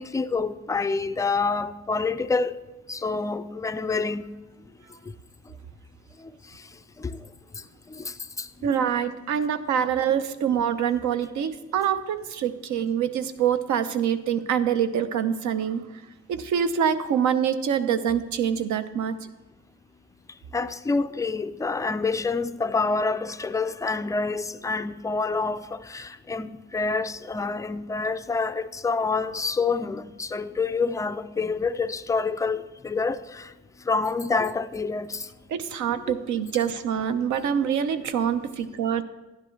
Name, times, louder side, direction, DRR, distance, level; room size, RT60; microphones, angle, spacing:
voice 1, 0.0-2.6 2.9-4.3 7.0-7.2 7.9-8.5 20.5-33.5 33.9-35.3 36.1-36.2, left 4 dB, 10° left, 0.3 m, -27 dB
voice 2, 8.6-15.8 16.3-19.2 35.5-39.0, right 8 dB, 75° right, 0.8 m, -25 dB
11.5 x 10.0 x 3.2 m
cardioid pair, 90°, 30 cm